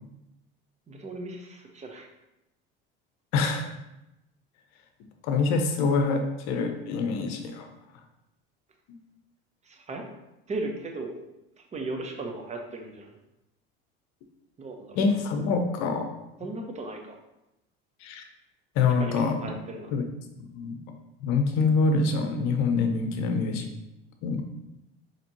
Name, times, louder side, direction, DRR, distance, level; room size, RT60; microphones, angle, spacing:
voice 1, 0.9-2.1 9.6-10.0 10.5-11.2 11.6-13.2 14.6-15.0 16.4-17.2 19.0-19.9, right 2 dB, 25° right, 3 dB, 0.7 m, -36 dB
voice 2, 3.3-3.7 5.2-7.7 15.0-16.1 18.0-18.2 18.8-19.4 19.9-20.0 20.4-20.8 21.2-23.7 24.2-24.4, left 4 dB, 65° left, 6 dB, 0.7 m, -25 dB
4.1 x 2.9 x 2.8 m, 0.92 s
supercardioid pair, 90°, 30 cm